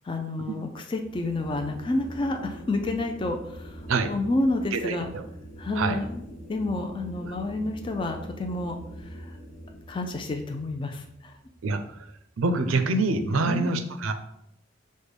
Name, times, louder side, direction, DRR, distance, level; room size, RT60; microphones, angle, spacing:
voice 1, 0.0-5.1 5.6-8.8 9.0-9.4 9.9-11.4 13.4-13.7, left 2 dB, 25° left, 4 dB, 0.3 m, -30 dB
sound 1, 0.9-12.2, equal, 60° left, 0.7 m, -43 dB
voice 2, 4.7-5.2 5.8-6.0 7.2-7.3 11.6-11.8 12.4-14.1, right 3 dB, 80° right, 8 dB, 0.5 m, -25 dB
6.2 x 2.1 x 3.4 m, 0.77 s
head